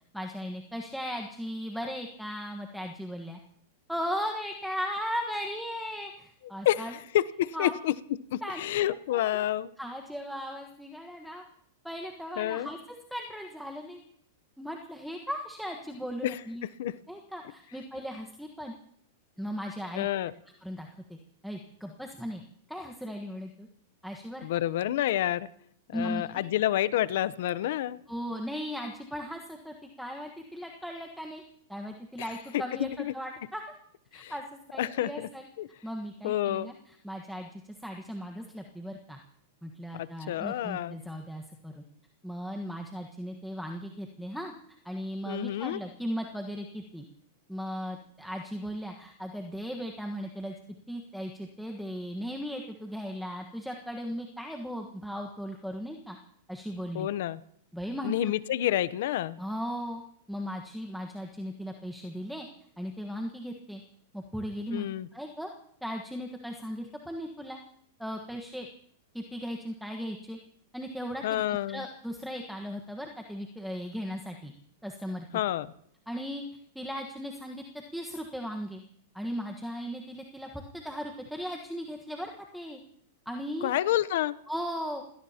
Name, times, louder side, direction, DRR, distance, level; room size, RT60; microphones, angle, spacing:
voice 1, 0.1-3.4 3.9-6.9 7.5-7.8 8.4-8.6 9.1-9.4 9.8-11.4 11.8-12.8 13.1-14.0 14.6-16.6 17.1-18.7 19.4-20.1 20.6-21.2 21.4-22.4 22.7-23.7 24.0-24.4 25.9-26.2 28.1-31.4 31.7-33.6 34.1-35.5 35.8-39.2 39.6-41.8 42.2-44.5 44.8-47.0 47.5-50.5 50.9-56.2 56.5-57.1 57.7-58.1 59.4-60.0 60.3-62.5 62.8-63.8 64.1-64.9 65.1-65.5 65.8-67.6 68.0-68.7 69.1-70.4 70.7-71.4 71.7-74.5 74.8-75.3 76.1-77.6 77.9-78.8 79.1-82.8 83.2-83.7 84.5-85.0, equal, ahead, 2 dB, 1.4 m, -37 dB
voice 2, 6.6-7.9 8.3-9.7 12.4-12.7 16.2-16.4 16.8-16.9 19.9-20.3 24.4-25.5 25.9-28.0 32.2-32.3 32.5-33.1 34.1-34.3 34.8-35.3 35.6-35.7 36.2-36.7 39.9-41.0 45.3-45.8 56.9-57.4 58.0-59.4 64.7-65.1 71.2-71.8 75.3-75.7 83.6-84.4, left 13 dB, 65° left, 17 dB, 0.8 m, -29 dB
28.5 x 17.5 x 2.9 m, 0.66 s
hypercardioid pair, 135°, 0 cm